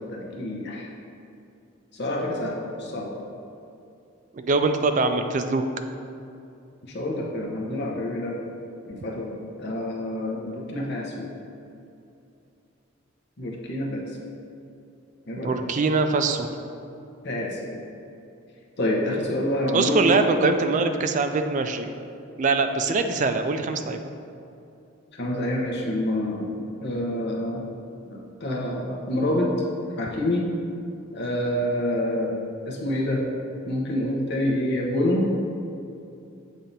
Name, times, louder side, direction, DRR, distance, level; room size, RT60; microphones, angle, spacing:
voice 1, 0.1-0.9 1.9-3.1 6.9-8.5 8.9-11.3 13.4-14.2 15.3-15.6 17.2-17.8 18.8-20.1 25.2-27.6 28.1-29.5 30.0-30.5 31.1-32.3 32.6-33.2 33.7-35.2, left 1 dB, 55° left, -2 dB, 0.8 m, -27 dB
voice 2, 4.3-5.7 15.4-16.5 19.7-22.0 22.4-24.0, right 3 dB, 40° right, 7 dB, 0.3 m, -23 dB
7.2 x 2.8 x 5.2 m, 2.7 s
head